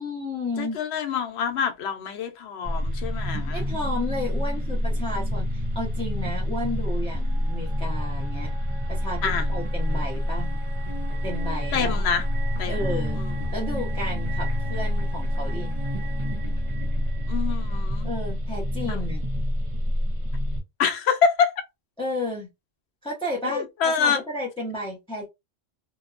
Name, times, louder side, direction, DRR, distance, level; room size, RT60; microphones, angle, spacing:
voice 1, 0.0-0.8 3.5-8.5 8.9-9.2 9.5-10.5 11.2-12.1 12.7-13.2 13.5-15.8 18.0-19.2 22.0-22.5 23.0-25.3, left 1 dB, 5° left, 0.6 m, -32 dB
voice 2, 0.6-3.6 9.2-9.5 11.7-12.3 12.6-13.4 17.3-18.1 18.9-19.0 20.8-21.5 23.4-24.2, left 6 dB, 80° left, 0.9 m, -26 dB
sound 1, 2.6-20.6, equal, 35° right, 0.6 m, -27 dB
2.8 x 2.1 x 2.4 m
omnidirectional pair, 1.1 m